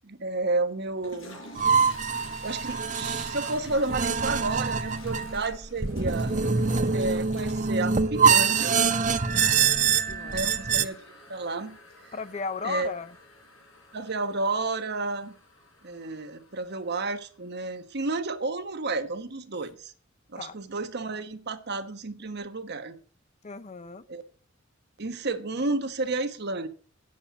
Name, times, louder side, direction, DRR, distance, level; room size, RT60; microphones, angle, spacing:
voice 1, 0.0-1.4 2.4-6.3 6.9-8.8 10.3-11.0 11.3-11.8 12.6-12.9 13.9-15.4 15.8-19.9 20.3-23.0 24.1-24.2 25.0-26.7, right 3 dB, 55° right, 1.1 m, -31 dB
Toilet flush, 0.9-17.6, left 2 dB, 75° left, 4.8 m, -50 dB
sound 1, 1.6-10.8, right 5 dB, 40° right, 0.7 m, -25 dB
voice 2, 10.1-10.5 12.1-13.2 20.4-20.6 23.4-24.0, left 4 dB, 35° left, 0.6 m, -36 dB
9.1 x 7.3 x 6.9 m
head